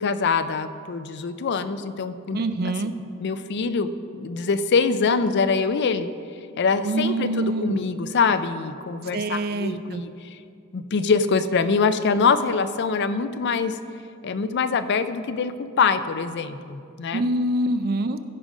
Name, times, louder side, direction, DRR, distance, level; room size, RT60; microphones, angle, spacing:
voice 1, 0.0-2.4 3.2-3.9 4.1-6.1 6.6-10.1 10.7-13.7 14.2-17.2, left 5 dB, 55° left, 12 dB, 0.4 m, -24 dB
voice 2, 2.3-2.9 6.8-7.8 9.1-10.0 17.1-18.2, right 1 dB, 50° right, 11 dB, 0.5 m, -25 dB
15.0 x 5.1 x 5.0 m, 2.3 s
head